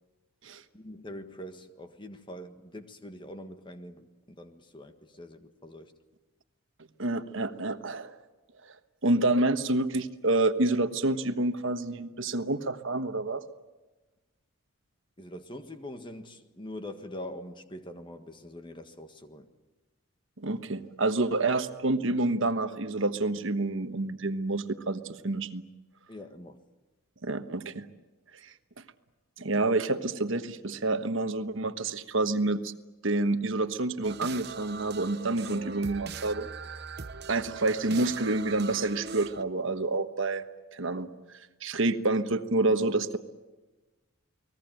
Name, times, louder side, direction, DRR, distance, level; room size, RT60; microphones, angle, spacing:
voice 1, 0.7-5.9 15.2-19.5 26.1-26.6, left 1 dB, 20° left, 1.6 m, -44 dB
voice 2, 7.0-8.1 9.0-13.4 20.4-25.6 27.2-27.9 28.4-28.5 29.4-32.7 33.0-36.5 37.3-40.4 40.7-41.1 41.6-43.2, right 2 dB, 65° right, 1.3 m, -28 dB
sound 1, 34.0-39.4, right 5 dB, 50° right, 0.9 m, -41 dB
30.0 x 20.0 x 9.2 m
head